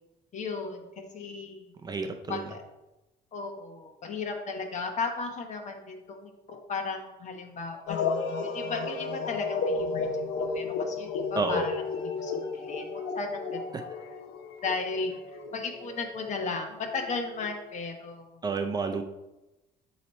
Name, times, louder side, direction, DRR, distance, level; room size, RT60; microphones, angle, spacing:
voice 1, 0.3-1.7 2.3-2.6 3.3-8.0 8.4-10.2 10.5-11.7 12.2-12.9 13.1-13.6 14.6-18.4, left 4 dB, 45° left, 4 dB, 1.0 m, -35 dB
voice 2, 1.8-2.5 11.4-11.6 18.4-19.0, right 4 dB, 25° right, 5 dB, 0.5 m, -30 dB
sound 1, 7.9-17.8, left 4 dB, 80° left, 0.8 m, -33 dB
7.9 x 3.0 x 4.2 m, 1.0 s
cardioid pair, 110°, 17 cm